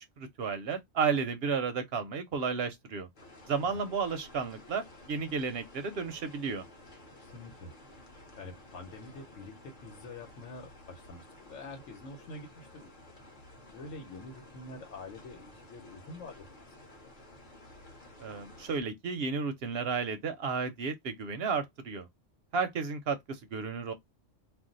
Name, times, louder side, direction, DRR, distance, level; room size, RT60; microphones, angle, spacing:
voice 1, 0.2-3.1 3.5-6.6 18.2-22.1 22.5-23.9, right 5 dB, 65° right, 0.7 m, -33 dB
sound 1, 3.2-18.8, left 1 dB, 45° left, 0.9 m, -53 dB
voice 2, 7.2-12.9 13.7-16.8 17.0-17.1, left 2 dB, 75° left, 1.2 m, -47 dB
2.5 x 2.1 x 3.7 m
omnidirectional pair, 1.3 m